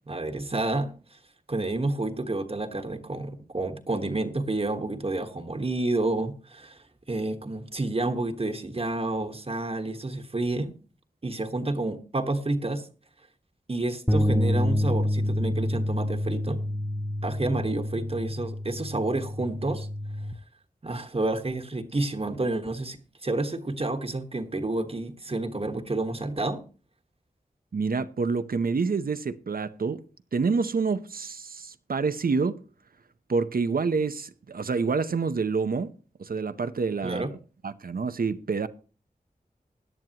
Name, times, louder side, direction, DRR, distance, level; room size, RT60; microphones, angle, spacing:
voice 1, 0.1-0.9 1.5-10.7 11.2-12.9 13.7-16.6 17.2-19.9 20.8-26.7 37.0-37.3, right 2 dB, 40° right, 1.3 m, -29 dB
sound 1, 14.1-20.3, left 1 dB, ahead, 0.8 m, -28 dB
voice 2, 27.7-30.0 30.3-32.6 33.3-35.9 36.2-37.3 37.6-38.7, right 4 dB, 75° right, 0.8 m, -27 dB
16.5 x 10.5 x 2.9 m
wide cardioid pair, 75°, 15 cm